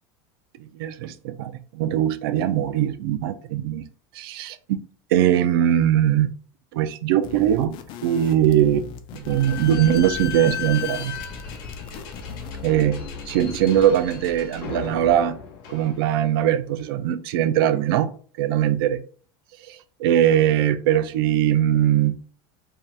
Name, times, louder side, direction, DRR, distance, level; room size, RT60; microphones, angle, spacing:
voice 1, 0.6-3.8 4.1-4.5 5.1-6.3 6.7-7.8 8.0-11.1 12.6-15.4 15.7-18.1 18.4-19.0 19.7-22.2, right 11 dB, 85° right, 0.4 m, -21 dB
sound 1, 7.2-12.7, left 7 dB, 45° left, 0.4 m, -40 dB
Slam / Squeak, 9.1-16.4, left 7 dB, 80° left, 0.9 m, -35 dB
2.8 x 2.3 x 3.2 m
supercardioid pair, 150°, 12 cm